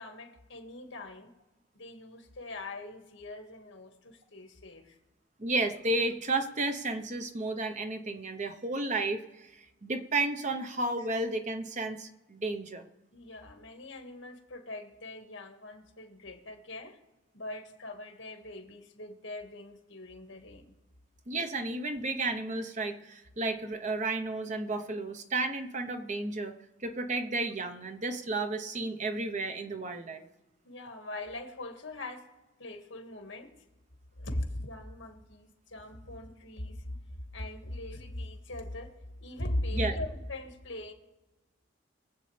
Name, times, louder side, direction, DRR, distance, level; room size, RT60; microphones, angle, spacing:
voice 1, 0.0-1.3 1.7-5.0 11.0-11.1 13.1-17.0 17.3-20.7 30.6-32.3 32.6-33.5 34.2-37.0 37.3-39.0 39.2-40.9, left 1 dB, 70° left, 4 dB, 1.9 m, -40 dB
voice 2, 5.4-12.9 21.3-26.5 26.8-30.3 39.7-40.0, right 2 dB, 40° right, 7 dB, 0.9 m, -32 dB
23.5 x 8.1 x 3.4 m, 1.1 s
head